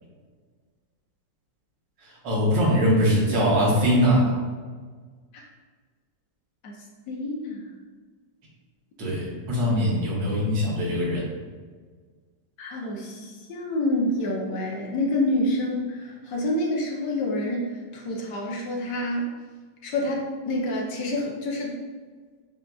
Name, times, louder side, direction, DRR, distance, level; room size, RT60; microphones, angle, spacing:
voice 1, 2.2-4.3 9.0-11.3, equal, 80° right, -3 dB, 1.7 m, -22 dB
voice 2, 7.1-7.7 12.6-19.3 19.8-21.8, left 1 dB, 70° left, -2 dB, 1.3 m, -28 dB
7.2 x 2.4 x 2.3 m, 1.5 s
omnidirectional pair, 1.9 m